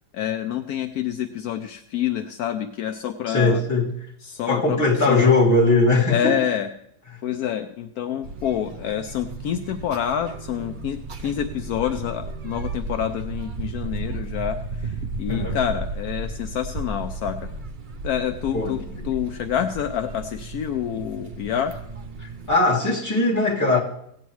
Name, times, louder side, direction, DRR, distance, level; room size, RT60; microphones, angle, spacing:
voice 1, 0.1-3.6 4.2-5.3 6.1-6.7 7.2-17.5 18.0-21.7, left 9 dB, 75° left, 7 dB, 1.0 m, -27 dB
voice 2, 3.3-3.9 4.5-6.3 15.3-15.6 18.5-18.7 22.2-23.8, left 3 dB, 10° left, -5 dB, 2.1 m, -20 dB
sound 1, 8.2-22.6, right 3 dB, 65° right, 0.4 m, -34 dB
16.5 x 9.2 x 3.1 m, 0.71 s
omnidirectional pair, 1.7 m